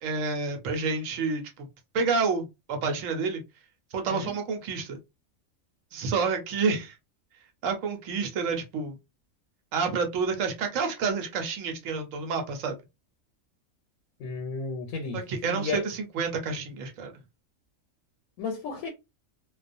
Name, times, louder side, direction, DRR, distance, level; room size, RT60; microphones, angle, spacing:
voice 1, 0.0-1.7 1.9-3.4 3.9-5.0 5.9-6.9 7.6-9.0 9.7-12.8 15.1-17.1, right 4 dB, 75° right, 1.1 m, -29 dB
voice 2, 14.2-15.9 18.4-18.9, left 4 dB, 85° left, 1.0 m, -33 dB
2.3 x 2.3 x 2.5 m
omnidirectional pair, 1.4 m